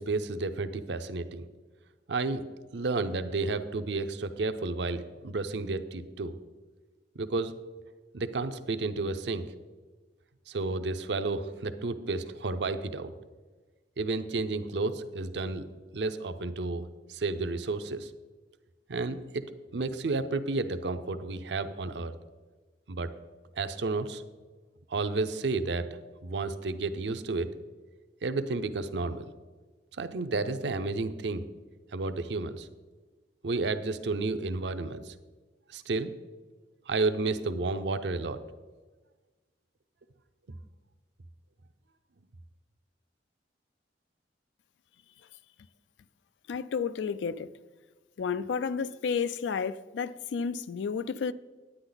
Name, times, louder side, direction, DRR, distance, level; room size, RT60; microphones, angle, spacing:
voice 1, 0.0-1.4 2.1-2.4 2.7-6.3 7.2-7.5 8.1-9.5 10.5-13.1 14.0-15.7 15.9-18.1 18.9-19.4 19.7-22.1 22.9-23.1 23.6-24.2 24.9-25.9 26.2-27.5 28.2-29.3 30.0-31.4 31.9-32.7 33.4-35.1 35.7-36.1 36.9-38.4, right 3 dB, 70° right, 0.6 m, -31 dB
voice 2, 46.5-47.5 48.2-51.3, left 6 dB, 75° left, 0.4 m, -31 dB
10.0 x 9.6 x 4.0 m
head